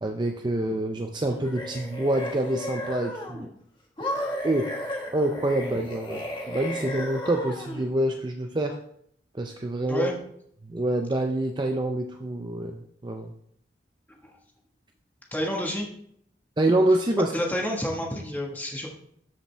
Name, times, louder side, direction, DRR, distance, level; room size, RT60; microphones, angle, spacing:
voice 1, 0.0-3.5 4.4-4.7 5.1-8.8 9.3-10.1 10.6-13.3 16.6-17.3, right 1 dB, 25° right, 4 dB, 0.5 m, -26 dB
sound 1, 1.3-3.5 4.0-7.9, left 1 dB, 25° left, 1.5 m, -34 dB
voice 2, 15.3-15.9 17.3-18.9, left 1 dB, 10° left, 0 dB, 1.4 m, -29 dB
13.0 x 5.2 x 3.3 m, 0.69 s
head